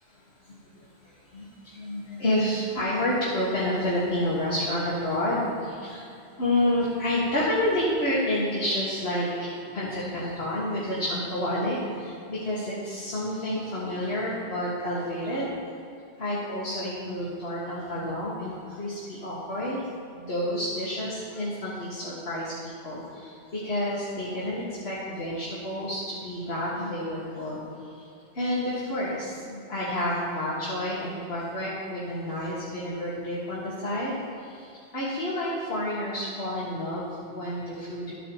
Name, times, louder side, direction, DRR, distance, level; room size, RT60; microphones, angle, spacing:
voice 1, 0.8-15.7 16.2-19.8 20.1-27.6 27.9-28.1 28.3-38.1, left 1 dB, 75° left, -8 dB, 2.0 m, -29 dB
13.0 x 9.2 x 3.1 m, 2.6 s
omnidirectional pair, 1.1 m